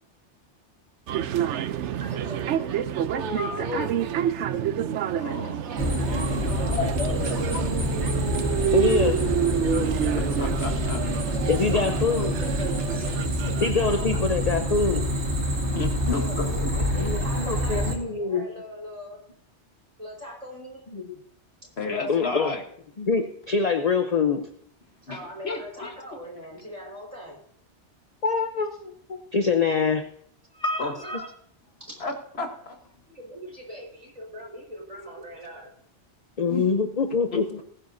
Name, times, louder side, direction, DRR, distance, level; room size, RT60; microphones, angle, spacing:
sound 1, 1.1-13.7, right 10 dB, 85° right, 0.9 m, -29 dB
voice 1, 2.0-2.7 5.4-6.9 7.3-7.6 11.7-14.2 16.1-19.2 20.0-20.8 25.1-27.4 30.8-31.3 31.9-32.1 33.1-35.7, equal, 30° right, -2 dB, 4.8 m, -41 dB
voice 2, 3.1-3.9 6.8-7.4 8.7-9.2 9.6-9.9 11.5-12.3 13.6-15.1 17.0-18.4 20.9-21.2 21.9-22.5 23.0-24.5 28.2-30.0 30.6-31.2 36.4-37.6, left 4 dB, 40° left, 7 dB, 0.8 m, -25 dB
voice 3, 5.1-5.5 10.2-11.0 11.3-11.5 15.7-16.5 21.8-22.6 25.1-25.9 30.8-30.9 32.0-32.8 36.5-36.9 37.3-37.6, left 3 dB, 65° left, 4 dB, 1.6 m, -32 dB
sound 2, 5.8-18.0, equal, 70° right, 2.1 m, -27 dB
20.0 x 10.0 x 2.7 m, 0.66 s
omnidirectional pair, 1.2 m